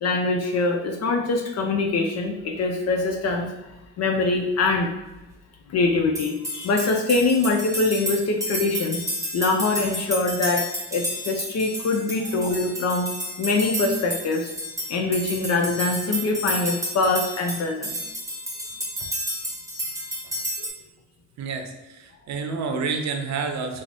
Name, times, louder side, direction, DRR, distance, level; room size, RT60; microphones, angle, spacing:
voice 1, 0.0-3.5 4.0-4.9 5.7-9.0 9.3-13.1 13.4-14.5 14.9-18.0 20.6-20.7, left 3 dB, 60° left, 2 dB, 0.5 m, -23 dB
sound 1, 6.1-20.7, equal, 10° right, 0.9 m, -31 dB
voice 2, 21.4-23.8, right 4 dB, 65° right, 5 dB, 0.6 m, -29 dB
3.1 x 2.0 x 3.9 m, 1.0 s
cardioid pair, 90°, 30 cm